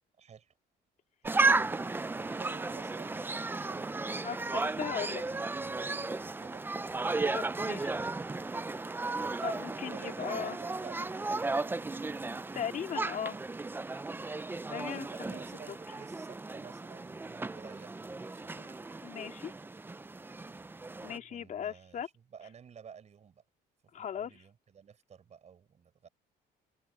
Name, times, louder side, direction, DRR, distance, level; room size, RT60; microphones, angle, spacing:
voice 1, 0.2-0.5 1.2-1.9 2.1-3.9 4.6-6.7 9.2-12.5 14.7-18.8 21.2-23.4 24.0-26.1, right 7 dB, 40° right, 5.6 m, -52 dB
sound 1, 1.2-21.2, right 3 dB, 10° right, 0.6 m, -34 dB
voice 2, 4.2-5.2 7.2-8.0 9.4-10.6 12.5-13.4 14.7-15.4 19.0-19.5 21.0-22.1 23.9-24.3, left 8 dB, 50° left, 3.1 m, -38 dB
cardioid pair, 110°, 17 cm